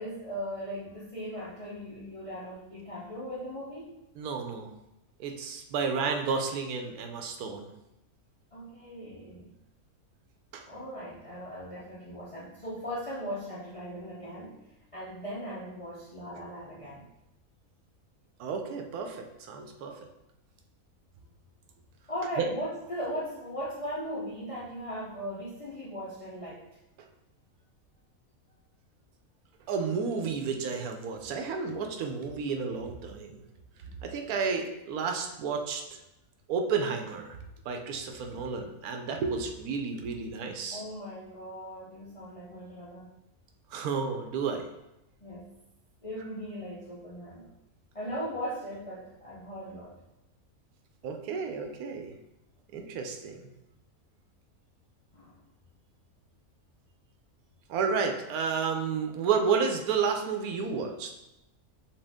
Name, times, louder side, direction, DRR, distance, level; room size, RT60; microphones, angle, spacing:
voice 1, 0.0-3.9 8.5-9.5 10.6-14.7 14.9-17.1 22.1-26.6 40.7-43.1 45.2-45.5 46.0-47.5 47.9-50.0 55.1-55.4, equal, 40° left, -7 dB, 0.5 m, -38 dB
voice 2, 4.2-4.7 5.2-7.7 10.5-10.6 18.4-20.0 22.4-22.5 29.7-33.4 34.0-36.0 36.5-37.4 37.7-40.8 43.7-44.7 51.0-52.1 52.7-53.5 57.7-61.1, right 5 dB, 80° right, 4 dB, 1.1 m, -31 dB
5.8 x 2.4 x 3.4 m, 0.91 s
omnidirectional pair, 1.5 m